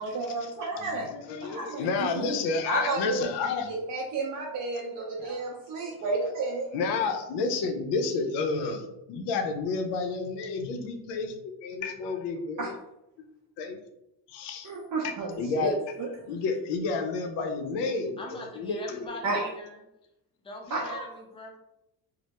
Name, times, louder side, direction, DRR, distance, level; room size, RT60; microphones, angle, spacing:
voice 1, 0.0-1.1 1.4-2.3 2.7-3.3 3.7-6.7 12.6-12.7 14.6-15.7 16.0-16.1 19.2-19.5 20.7-21.1, right 3 dB, 50° right, -3 dB, 0.6 m, -32 dB
voice 2, 1.1-3.7 5.2-5.4 5.9-6.0 6.7-12.7 13.6-13.8 14.3-14.7 15.0-15.7 16.3-19.1, left 4 dB, 80° left, 5 dB, 0.6 m, -30 dB
voice 3, 18.2-19.8 20.4-21.6, left 2 dB, 15° left, 0 dB, 0.5 m, -42 dB
2.1 x 2.1 x 2.8 m, 0.86 s
cardioid pair, 85°, 41 cm